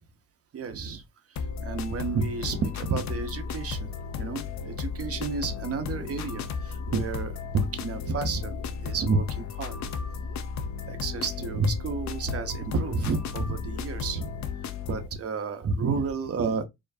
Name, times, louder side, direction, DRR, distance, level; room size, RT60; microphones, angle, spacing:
voice 1, 0.5-1.0 1.6-3.9 4.2-9.8 10.9-14.3 14.9-16.6, right 4 dB, 50° right, 0.9 m, -30 dB
sound 1, 1.4-15.1, left 5 dB, 65° left, 0.6 m, -34 dB
4.5 x 2.9 x 2.7 m
cardioid pair, 90°, 30 cm